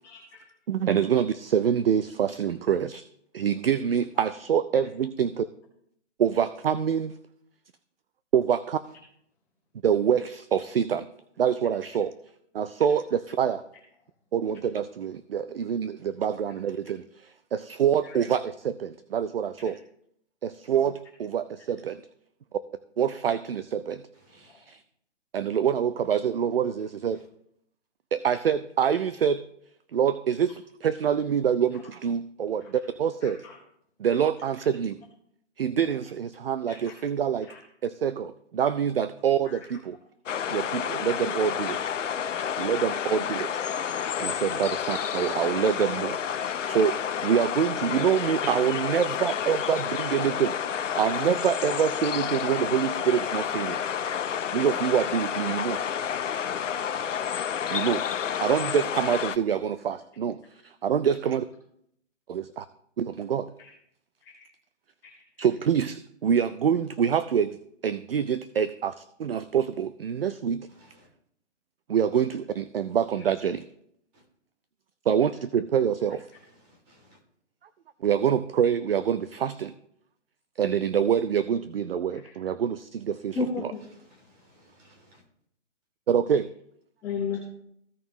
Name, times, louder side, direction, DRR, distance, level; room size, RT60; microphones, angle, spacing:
voice 1, 0.0-0.4 18.0-18.2 24.5-24.6 33.2-33.6 36.7-36.9 37.5-37.6 39.4-39.6 41.6-41.7 43.3-43.4 45.4-45.7 49.4-49.5 63.6-63.7 64.2-64.3 65.0-65.1 65.4-65.5 82.1-82.3 83.3-83.8 87.0-87.4, left 5 dB, 10° left, 1.0 m, -35 dB
voice 2, 0.7-3.0 3.3-5.4 6.2-7.1 8.3-8.8 9.8-11.1 11.4-12.1 12.5-13.6 14.3-19.8 20.4-22.0 23.0-24.0 24.3-24.8 25.3-27.2 28.1-29.4 29.9-33.4 34.0-35.0 35.6-37.5 37.8-40.0 40.5-41.8 42.6-43.5 44.2-46.2 46.7-53.8 54.5-55.8 57.7-60.4 60.8-61.5 62.3-62.7 63.0-63.5 65.4-67.6 67.8-70.7 71.9-73.7 75.1-76.2 78.0-79.7 80.6-83.4 86.1-86.5, right 8 dB, 55° right, 0.5 m, -26 dB
sound 1, 40.3-59.4, left 8 dB, 85° left, 0.7 m, -30 dB
voice 3, 55.9-56.3 70.8-70.9 76.7-77.2 84.3-85.2, equal, 35° right, 2.8 m, -59 dB
15.5 x 5.4 x 3.0 m
hypercardioid pair, 165°, 36 cm